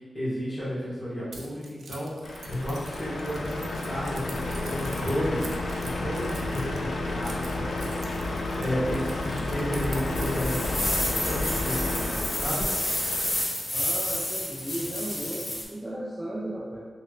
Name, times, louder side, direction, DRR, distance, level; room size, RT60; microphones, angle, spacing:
voice 1, 0.0-5.4 5.8-7.9 8.6-12.7, equal, 15° left, -11 dB, 1.4 m, -32 dB
Keys jangling, 1.3-11.1, right 3 dB, 80° right, 0.4 m, -45 dB
Truck, 2.2-13.4, left 2 dB, 70° left, 0.3 m, -31 dB
sound 1, 10.1-15.6, left 1 dB, 35° left, 0.7 m, -30 dB
voice 2, 13.7-16.8, right 1 dB, 10° right, -6 dB, 0.4 m, -35 dB
3.1 x 3.0 x 2.3 m, 1.3 s
wide cardioid pair, 155°, 0 cm